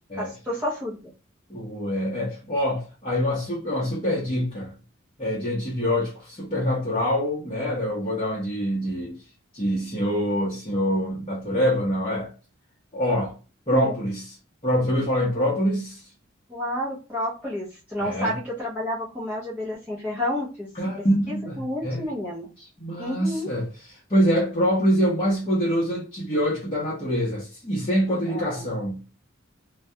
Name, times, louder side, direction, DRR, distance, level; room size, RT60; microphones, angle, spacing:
voice 1, 0.2-1.0 13.7-14.0 16.5-20.7 21.0-22.5 23.0-23.5 28.3-28.7, left 1 dB, 10° right, 0.6 m, -30 dB
voice 2, 1.5-4.7 5.2-9.2 9.5-12.3 12.9-13.3 13.7-14.4 14.6-16.1 18.0-18.3 20.7-22.0 22.6-29.0, equal, 25° left, 0.7 m, -25 dB
2.3 x 2.1 x 2.7 m
head